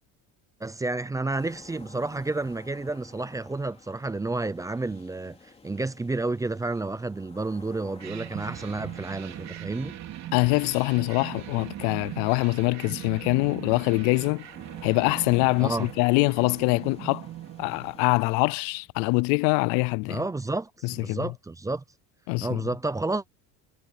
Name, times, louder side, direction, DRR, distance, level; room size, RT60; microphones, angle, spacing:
voice 1, 0.6-5.4 5.6-10.0 15.6-15.9 20.1-20.7 21.0-21.8 22.4-23.2, right 2 dB, 10° right, 0.5 m, -30 dB
sound 1, 1.4-18.5, left 4 dB, 15° left, 3.3 m, -53 dB
sound 2, 8.0-18.5, right 12 dB, 40° right, 3.6 m, -40 dB
voice 2, 10.3-14.4 14.8-17.3 17.6-20.2 20.8-21.3 22.3-22.6, left 29 dB, 80° left, 0.6 m, -24 dB
cardioid pair, 150°, 40 cm